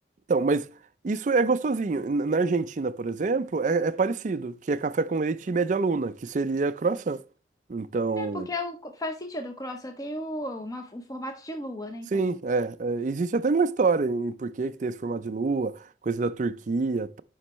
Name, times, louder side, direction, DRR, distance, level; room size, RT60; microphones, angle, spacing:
voice 1, 0.3-0.7 1.0-7.2 7.7-8.5 12.1-17.2, right 4 dB, 40° right, 0.4 m, -26 dB
voice 2, 8.2-12.2, left 1 dB, 20° left, 0.6 m, -35 dB
9.8 x 5.3 x 3.0 m
head